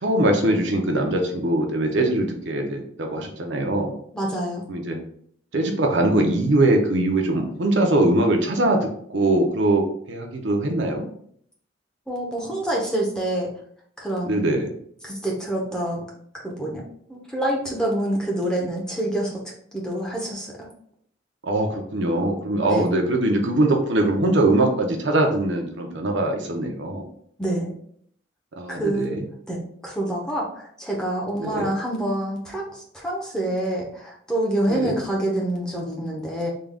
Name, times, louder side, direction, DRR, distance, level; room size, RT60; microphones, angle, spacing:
voice 1, 0.0-3.9 4.7-5.0 5.5-11.1 14.2-14.7 21.4-27.1 28.6-29.3 31.4-31.7 34.7-34.9, right 1 dB, 65° right, 2 dB, 0.6 m, -22 dB
voice 2, 4.1-4.6 12.1-13.5 14.0-14.4 15.0-16.0 16.3-16.8 17.1-19.4 19.7-20.7 22.7-22.9 27.4-27.7 28.7-29.1 29.5-36.5, right 1 dB, 5° left, -3 dB, 0.7 m, -26 dB
3.7 x 2.3 x 3.4 m, 0.64 s
head